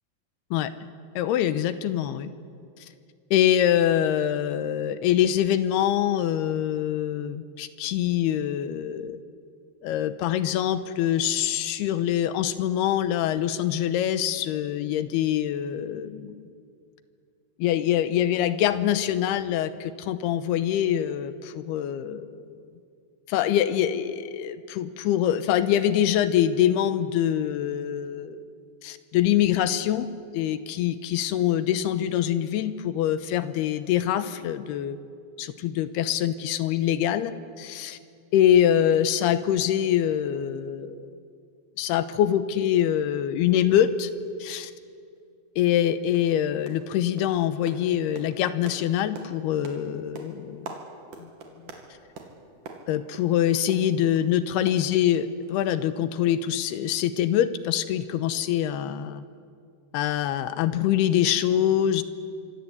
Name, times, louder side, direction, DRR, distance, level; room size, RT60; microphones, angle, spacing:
voice 1, 1.2-2.3 3.3-9.2 9.8-16.4 17.6-22.4 23.3-28.4 28.8-30.1 30.3-35.0 35.4-38.0 38.3-41.0 41.8-44.1 44.4-44.7 45.6-50.8 51.2-51.3 52.9-59.2 59.9-62.0, left 10 dB, 75° left, 12 dB, 2.8 m, -24 dB
sound 1, 45.2-45.3 45.7-45.8 46.1-46.4 46.7-46.9 47.2-54.3 54.7-55.4 55.7-55.8 56.2-56.3, right 4 dB, 55° right, 3.8 m, -45 dB
26.0 x 24.5 x 8.4 m, 2.4 s
omnidirectional pair, 4.9 m